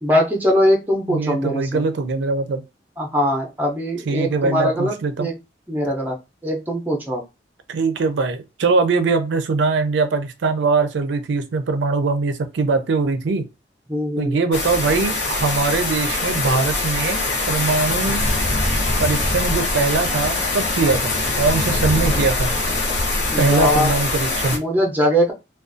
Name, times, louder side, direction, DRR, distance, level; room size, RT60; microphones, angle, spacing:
voice 1, 0.0-1.8 3.0-5.3 5.7-6.2 6.4-7.2 13.9-14.4 23.3-24.0 24.5-25.3, equal, 10° right, 0.5 m, -21 dB
voice 2, 1.1-2.6 4.1-5.3 7.7-13.4 14.2-17.2 17.5-18.2 19.0-22.5 23.4-24.6, right 4 dB, 85° right, 0.4 m, -21 dB
sound 1, 14.5-24.6, left 2 dB, 75° left, 0.8 m, -22 dB
2.4 x 2.2 x 2.5 m
head